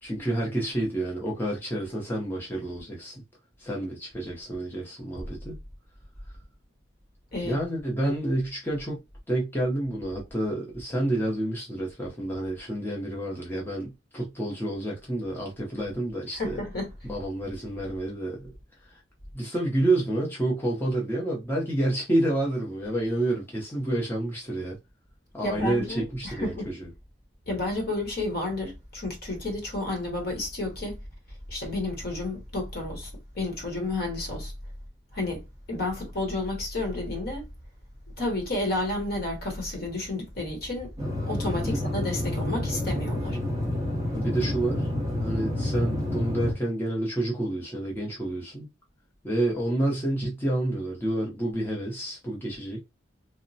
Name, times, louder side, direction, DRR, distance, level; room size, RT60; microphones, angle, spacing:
voice 1, 0.0-3.2 3.6-5.6 7.4-9.0 9.3-16.6 17.0-18.5 18.8-19.0 19.3-24.8 25.3-26.9 41.6-41.9 44.1-44.9 45.2-48.7 49.2-52.8, right 1 dB, 10° left, 0.6 m, -29 dB
voice 2, 16.4-16.9 25.4-26.7 27.5-31.0 31.5-34.5 35.1-35.4 35.7-37.5 38.2-40.9 41.3-43.4, left 2 dB, 50° left, 1.0 m, -31 dB
sound 1, 41.0-46.5, left 1 dB, 20° right, 0.8 m, -29 dB
3.0 x 2.1 x 2.6 m
head